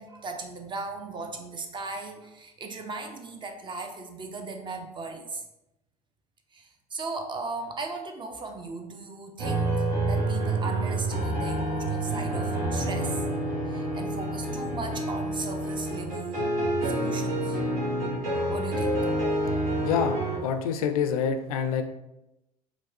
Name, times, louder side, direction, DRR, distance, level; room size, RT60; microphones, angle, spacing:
voice 1, 0.0-5.4 6.5-13.2 13.7-16.5 16.8-17.6 18.5-19.1, right 3 dB, 25° right, 5 dB, 0.6 m, -37 dB
sound 1, 9.4-20.4, right 1 dB, 70° right, 1.0 m, -28 dB
voice 2, 19.8-20.2 20.4-21.8, left 7 dB, 70° left, 8 dB, 0.4 m, -26 dB
4.5 x 2.2 x 2.6 m, 0.92 s
figure-of-eight pair, 65°, 19 cm